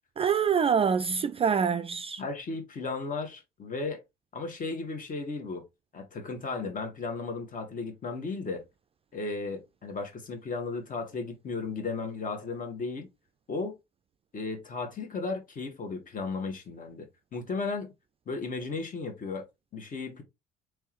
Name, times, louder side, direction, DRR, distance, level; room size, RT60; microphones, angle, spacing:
voice 1, 0.2-2.2, right 6 dB, 30° right, 0.4 m, -25 dB
voice 2, 2.2-4.0 4.3-5.6 5.9-8.6 9.1-13.1 13.5-13.8 14.3-17.9 18.3-19.5 19.7-20.2, left 4 dB, 40° left, 1.4 m, -35 dB
3.5 x 3.2 x 3.0 m
hypercardioid pair, 55°, 21 cm